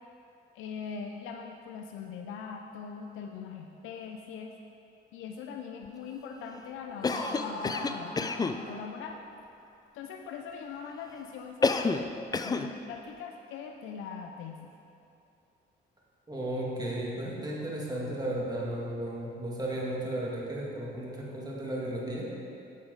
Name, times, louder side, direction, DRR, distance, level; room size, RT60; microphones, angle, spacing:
voice 1, 0.5-4.6 5.1-9.2 9.9-12.1 12.4-14.7, left 6 dB, 90° left, 3 dB, 0.5 m, -41 dB
Laughter, 6.9-9.2, left 1 dB, 45° left, 2.0 m, -40 dB
Cough, 7.0-8.6 11.6-12.1 12.3-12.7, left 4 dB, 20° left, 0.4 m, -28 dB
voice 2, 16.3-22.3, right 1 dB, 20° right, -4 dB, 1.9 m, -34 dB
8.3 x 8.1 x 3.9 m, 2.7 s
cardioid pair, 90°, 20 cm